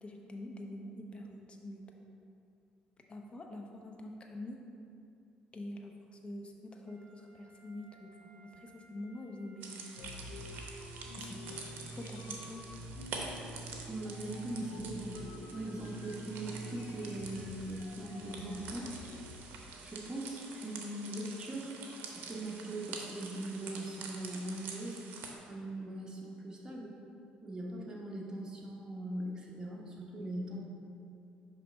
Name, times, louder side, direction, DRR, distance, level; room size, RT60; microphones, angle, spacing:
voice 1, 0.0-1.8 3.1-4.6 5.5-5.9 6.2-9.9 11.2-11.4 12.0-12.6, left 1 dB, 30° left, 2 dB, 0.8 m, -45 dB
Wind instrument woodwind instrument, 6.8-11.1, right 3 dB, 45° right, 1.1 m, -64 dB
sound 1, 9.6-25.4, right 4 dB, 65° right, 0.7 m, -47 dB
sound 2, 10.0-19.4, equal, 85° left, 0.4 m, -47 dB
voice 2, 13.9-15.2 15.5-18.9 19.8-21.8 22.0-25.0 25.4-26.9 27.4-30.6, right 1 dB, 20° right, -4 dB, 1.2 m, -40 dB
5.7 x 3.3 x 5.2 m, 2.6 s
supercardioid pair, 70°, 3 cm